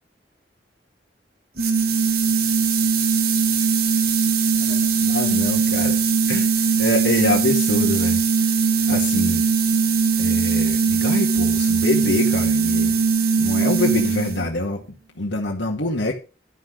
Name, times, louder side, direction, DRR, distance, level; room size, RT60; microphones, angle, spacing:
sound 1, 1.6-14.5, right 5 dB, 60° right, 2.0 m, -20 dB
voice 1, 4.5-6.0 6.3-6.5 6.8-8.2 8.9-9.4 10.2-13.0 13.4-14.8 15.2-16.1, left 2 dB, 85° left, -1 dB, 2.1 m, -25 dB
12.5 x 6.1 x 6.5 m, 0.32 s
head